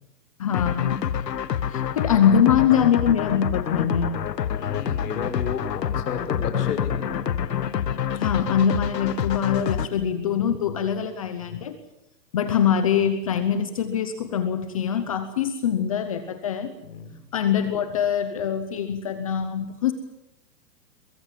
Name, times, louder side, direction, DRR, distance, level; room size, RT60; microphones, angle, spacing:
voice 1, 0.4-1.0 1.7-4.1 8.2-11.8 12.3-16.7 17.3-19.9, left 8 dB, 20° left, 10 dB, 0.8 m, -23 dB
sound 1, 0.5-9.9, left 9 dB, 90° left, 1.6 m, -27 dB
voice 2, 4.6-7.2 9.5-10.0 10.7-11.1 16.8-17.2, left 5 dB, 70° left, 7 dB, 5.5 m, -34 dB
23.0 x 22.0 x 7.4 m, 0.91 s
hypercardioid pair, 170°, 48 cm